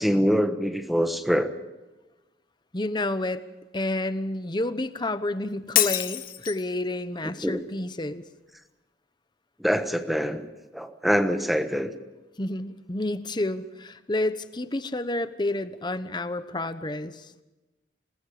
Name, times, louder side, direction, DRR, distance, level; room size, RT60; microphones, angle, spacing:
voice 1, 0.0-1.5 7.2-7.6 9.6-10.5 10.7-11.9, equal, ahead, 8 dB, 1.3 m, -24 dB
voice 2, 2.7-3.4 3.7-8.2 12.4-17.3, left 1 dB, 25° left, 11 dB, 1.0 m, -30 dB
Shatter, 5.8-6.7, left 12 dB, 55° left, 1.1 m, -25 dB
27.0 x 20.0 x 5.1 m, 1.1 s
head